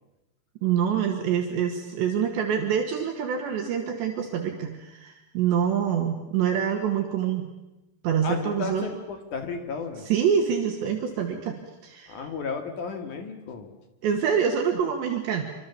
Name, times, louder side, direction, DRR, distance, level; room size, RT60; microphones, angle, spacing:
voice 1, 0.6-7.5 8.0-8.9 10.1-11.6 11.8-12.2 14.0-15.4, right 8 dB, 70° right, 3 dB, 3.9 m, -26 dB
voice 2, 8.2-10.1 12.1-13.7, left 5 dB, 50° left, 6 dB, 2.8 m, -33 dB
26.0 x 25.5 x 7.2 m, 0.97 s
omnidirectional pair, 5.6 m